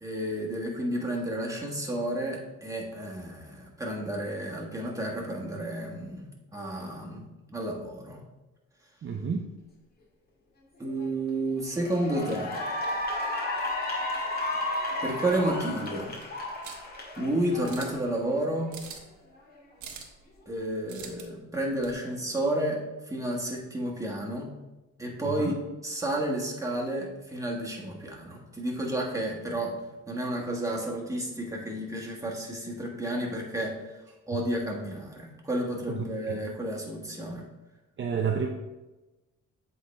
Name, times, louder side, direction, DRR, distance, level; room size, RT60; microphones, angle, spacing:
voice 1, 0.0-6.2 6.5-8.2 10.8-12.5 15.0-16.1 17.1-18.7 20.5-22.8 23.1-24.5 25.0-25.6 25.8-29.8 30.1-34.0 34.3-37.5, right 1 dB, 10° right, -2 dB, 1.6 m, -31 dB
voice 2, 9.0-9.4 25.2-25.5 35.9-36.4 38.0-38.5, right 6 dB, 40° right, 2 dB, 0.6 m, -30 dB
Cheering / Applause, 11.0-11.3 11.7-18.3, left 1 dB, 30° left, 1.8 m, -33 dB
sound 1, 16.6-16.9 17.6-18.1 18.7-19.2 19.8-20.2 20.9-21.2 21.8-22.0, right 6 dB, 75° right, 1.1 m, -43 dB
7.9 x 3.8 x 3.3 m, 1.1 s
cardioid pair, 90°, 30 cm